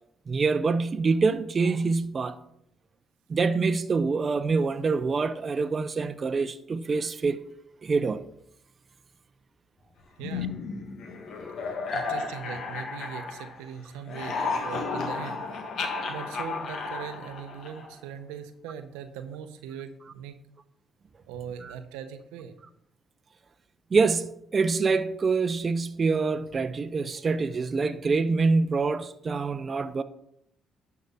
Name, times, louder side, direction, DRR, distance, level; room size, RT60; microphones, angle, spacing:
voice 1, 0.3-2.4 3.3-7.4 7.8-8.2 11.9-12.0 21.6-21.7 23.9-30.0, right 4 dB, 45° right, 0.6 m, -25 dB
sound 1, 10.2-13.7 14.0-18.0, left 4 dB, 65° left, 1.6 m, -33 dB
voice 2, 10.2-10.5 11.6-15.5 16.1-20.3 21.3-22.5, right 8 dB, 85° right, 0.8 m, -40 dB
11.5 x 4.8 x 5.5 m
hypercardioid pair, 55°, 0 cm